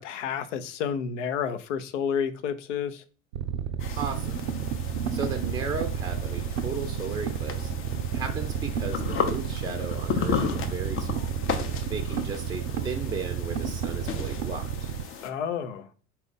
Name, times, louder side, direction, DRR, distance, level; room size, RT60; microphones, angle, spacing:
voice 1, 0.0-3.0 15.2-15.9, left 7 dB, 70° left, 0.6 m, -30 dB
sound 1, 3.3-15.1, right 8 dB, 65° right, 0.5 m, -31 dB
sound 2, 3.8-15.3, left 6 dB, 35° left, 0.7 m, -35 dB
voice 2, 4.0-4.4 5.1-7.7 8.1-11.4 11.9-14.9, right 4 dB, 10° right, 0.5 m, -35 dB
4.1 x 2.4 x 3.8 m
figure-of-eight pair, 70°, 38 cm